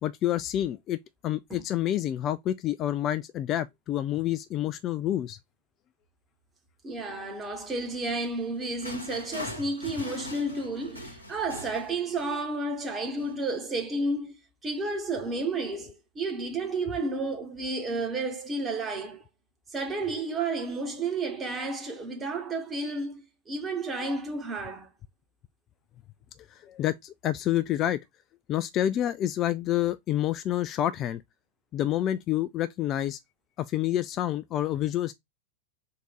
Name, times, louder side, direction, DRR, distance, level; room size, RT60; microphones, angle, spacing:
voice 1, 0.0-5.4 26.5-28.0 28.5-31.2 31.7-33.2 33.6-35.1, left 12 dB, 35° left, 0.3 m, -28 dB
voice 2, 6.8-19.2 19.7-24.9, right 2 dB, 20° right, 1.4 m, -31 dB
sound 1, 8.4-12.5 13.2-13.4, left 1 dB, 85° left, 1.0 m, -42 dB
3.7 x 2.6 x 4.6 m
figure-of-eight pair, 90°, 0 cm